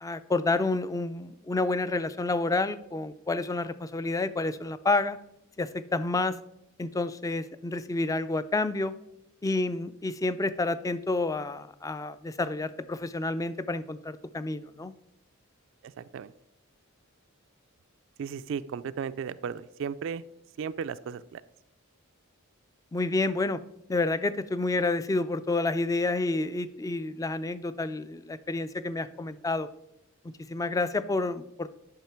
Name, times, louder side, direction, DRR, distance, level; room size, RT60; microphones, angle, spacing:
voice 1, 0.0-5.2 5.6-6.4 6.8-8.9 9.4-14.9 22.9-23.6 23.9-29.7 30.5-31.7, left 2 dB, 15° left, 14 dB, 0.3 m, -29 dB
voice 2, 15.8-16.3 18.2-20.2 20.6-21.4, right 7 dB, 65° right, 14 dB, 0.3 m, -35 dB
9.1 x 5.7 x 4.4 m, 0.82 s
head